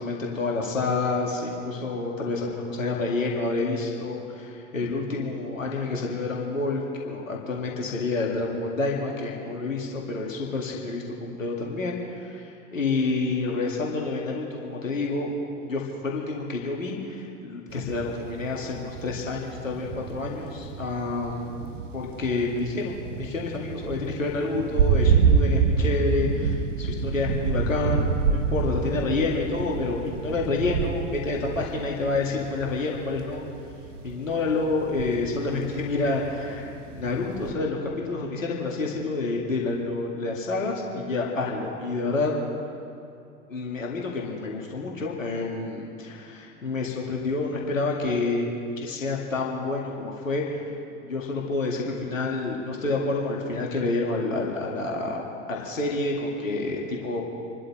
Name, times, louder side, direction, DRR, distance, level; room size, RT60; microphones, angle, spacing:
voice 1, 0.0-15.3 15.6-21.5 21.9-33.4 34.0-42.3 43.5-48.5 48.8-50.7 51.0-55.2 55.5-57.2, left 3 dB, 80° left, -1 dB, 2.1 m, -28 dB
sound 1, 17.7-37.5, right 5 dB, 70° right, 0.9 m, -28 dB
28.0 x 12.5 x 3.3 m, 2.6 s
figure-of-eight pair, 75°, 38 cm